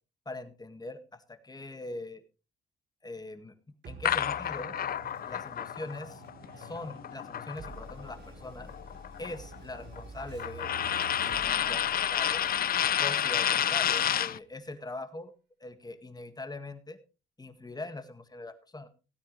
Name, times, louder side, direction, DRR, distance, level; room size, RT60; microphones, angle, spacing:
voice 1, 0.3-2.2 3.0-3.5 3.9-4.7 5.3-6.2 6.6-8.7 9.2-10.7 11.2-12.6 13.0-15.3 15.6-17.0 17.4-18.9, left 2 dB, 20° left, 9 dB, 1.9 m, -42 dB
sound 1, 3.8-14.6, right 4 dB, 60° right, 3.7 m, -49 dB
sound 2, 4.0-8.1 8.4-14.4, left 10 dB, 50° left, 0.5 m, -30 dB
17.0 x 9.3 x 3.3 m, 0.32 s
cardioid pair, 90°, 20 cm